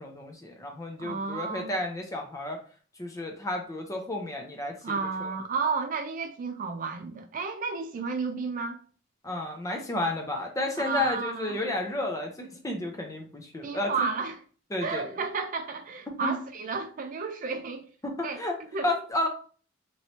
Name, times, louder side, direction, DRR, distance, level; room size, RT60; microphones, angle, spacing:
voice 1, 0.0-2.6 3.0-4.8 5.2-5.3 9.2-14.1 14.7-15.1 16.2-16.4 18.0-18.6 18.8-19.3, left 1 dB, 15° left, 0.6 m, -31 dB
voice 2, 1.0-1.7 4.8-8.8 10.8-11.5 13.6-14.4 14.8-17.8 18.2-18.4 18.7-18.9, right 4 dB, 45° right, 0.4 m, -32 dB
3.1 x 3.0 x 2.7 m
head